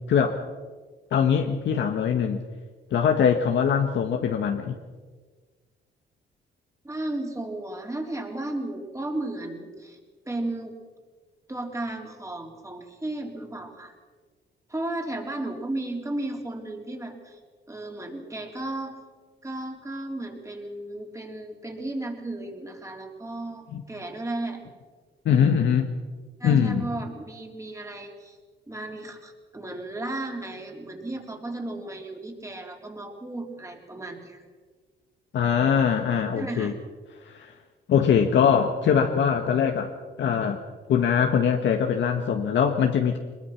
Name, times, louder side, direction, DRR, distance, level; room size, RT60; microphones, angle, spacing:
voice 1, 0.1-0.4 1.1-2.4 2.9-4.8 23.7-23.8 25.2-25.9 26.4-26.8 35.3-36.7 37.3-37.5 37.9-39.9 40.2-40.6 40.9-43.2, left 7 dB, 65° left, 4 dB, 1.5 m, -22 dB
voice 2, 6.8-10.0 10.3-10.8 11.5-14.0 14.7-17.4 17.7-19.0 19.4-24.6 26.4-28.4 28.7-34.4 36.3-36.8, right 2 dB, 15° right, 2 dB, 3.9 m, -34 dB
22.5 x 21.0 x 5.9 m, 1.4 s
cardioid pair, 90°, 20 cm